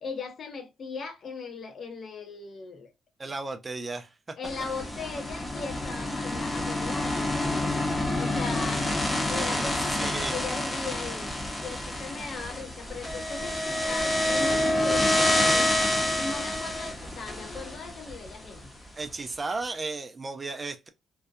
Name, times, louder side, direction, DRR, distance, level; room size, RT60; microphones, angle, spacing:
voice 1, 0.0-2.9 4.4-7.7 8.2-11.3 11.6-15.7 16.2-18.7, left 4 dB, 50° left, 0.7 m, -38 dB
voice 2, 3.2-4.4 9.4-9.5 10.0-10.4 19.0-20.9, right 3 dB, 30° right, 0.4 m, -34 dB
sound 1, 4.4-18.6, left 1 dB, 20° left, 0.8 m, -28 dB
2.6 x 2.1 x 2.2 m
cardioid pair, 90°, 0 cm